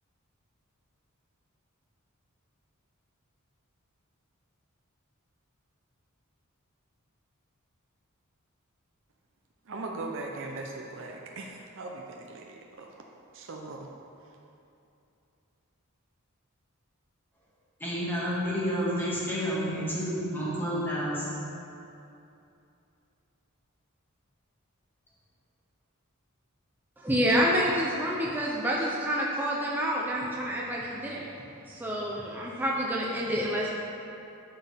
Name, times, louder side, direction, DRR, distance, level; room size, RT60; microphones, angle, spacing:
voice 1, 9.7-12.9 13.3-13.9, right 2 dB, 60° right, 0 dB, 0.7 m, -39 dB
voice 2, 17.8-21.3, equal, 10° left, -7 dB, 2.0 m, -30 dB
voice 3, 27.0-31.3 31.7-33.7, equal, 10° right, -4 dB, 0.7 m, -28 dB
11.5 x 6.5 x 3.5 m, 2.7 s
head